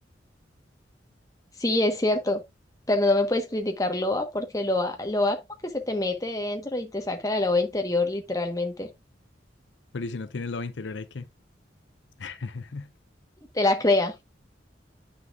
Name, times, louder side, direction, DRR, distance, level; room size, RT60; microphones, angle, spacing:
voice 1, 1.6-2.4 2.9-8.9 13.5-14.1, left 2 dB, 20° left, 1.2 m, -25 dB
voice 2, 9.9-11.3 12.2-12.9, left 3 dB, 75° left, 0.6 m, -34 dB
9.3 x 6.2 x 2.5 m
head